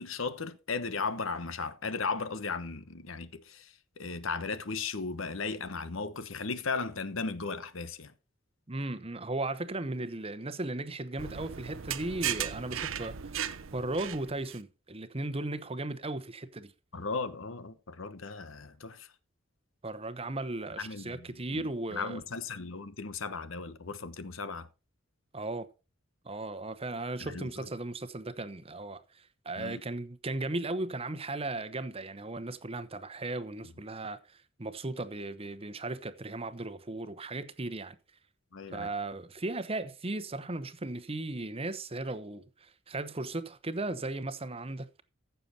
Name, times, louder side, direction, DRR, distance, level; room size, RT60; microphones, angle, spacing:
voice 1, 0.0-8.1 16.9-19.1 20.8-24.7 27.2-27.7 29.6-29.8 38.5-38.9, left 4 dB, 75° left, 1.1 m, -36 dB
voice 2, 8.7-13.3 13.7-16.7 19.8-22.2 25.3-25.7 26.2-38.0 38.7-45.0, right 2 dB, 30° right, 0.9 m, -36 dB
sound 1, 11.2-14.6, right 9 dB, 75° right, 0.8 m, -36 dB
15.0 x 6.9 x 4.3 m
head